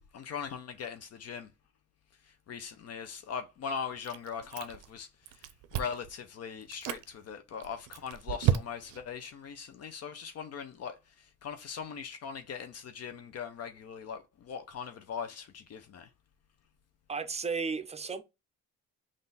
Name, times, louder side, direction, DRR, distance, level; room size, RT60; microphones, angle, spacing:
voice 1, 0.1-1.5 2.2-5.1 5.3-16.1, left 6 dB, 55° left, 0.6 m, -40 dB
Chewing mastication, 4.0-5.0 5.3-6.1 6.6-7.0 7.6-9.1, right 11 dB, 90° right, 0.5 m, -32 dB
voice 2, 17.1-18.2, right 5 dB, 20° right, 0.5 m, -34 dB
3.6 x 2.5 x 3.9 m
cardioid pair, 90°, 30 cm